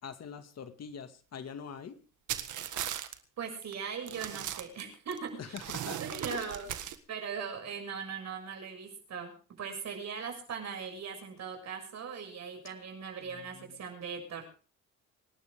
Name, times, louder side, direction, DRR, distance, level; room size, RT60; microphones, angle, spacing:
voice 1, 0.0-2.0 5.4-6.0 6.3-6.5 13.3-13.7, left 7 dB, 55° left, 8 dB, 2.2 m, -43 dB
sound 1, 2.3-3.1 3.6-3.7 4.1-5.2 5.6-6.9, right 11 dB, 80° right, 1.7 m, -37 dB
voice 2, 3.4-5.6 6.0-6.7 7.1-14.4, right 6 dB, 60° right, 3 dB, 7.0 m, -39 dB
25.5 x 12.0 x 3.7 m, 0.38 s
cardioid pair, 90°, 30 cm